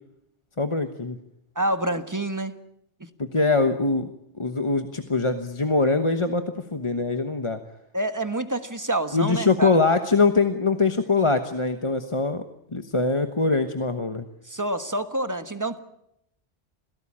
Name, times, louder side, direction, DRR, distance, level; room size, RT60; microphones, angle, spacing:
voice 1, 0.6-1.2 3.2-4.1 4.4-7.6 9.1-12.4 12.7-14.2, left 3 dB, 25° left, 7 dB, 1.2 m, -23 dB
voice 2, 1.5-2.5 7.9-9.7 14.5-15.8, right 1 dB, 15° right, 9 dB, 1.4 m, -27 dB
27.0 x 17.0 x 8.7 m, 0.78 s
omnidirectional pair, 1.2 m